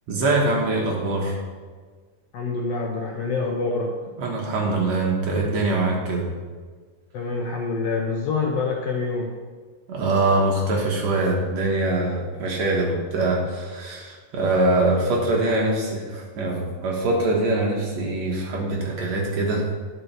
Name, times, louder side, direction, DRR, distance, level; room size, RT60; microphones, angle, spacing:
voice 1, 0.1-1.4 4.2-6.3 9.9-19.6, right 2 dB, 60° right, -2 dB, 2.3 m, -23 dB
voice 2, 2.3-3.9 7.1-9.3 15.3-15.9, left 4 dB, 75° left, 0 dB, 1.5 m, -26 dB
9.7 x 6.3 x 4.6 m, 1.5 s
omnidirectional pair, 3.8 m